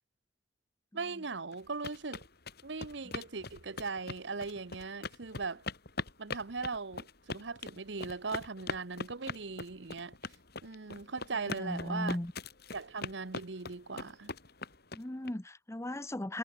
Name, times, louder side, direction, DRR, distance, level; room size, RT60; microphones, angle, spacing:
voice 1, 0.9-2.2 2.6-5.6 6.2-10.1 10.6-12.2 12.7-14.3, right 4 dB, 65° right, 1.0 m, -39 dB
sound 1, 1.5-15.3, left 3 dB, 55° left, 5.1 m, -41 dB
voice 2, 11.3-12.3 14.9-16.4, left 1 dB, 15° left, 0.8 m, -37 dB
head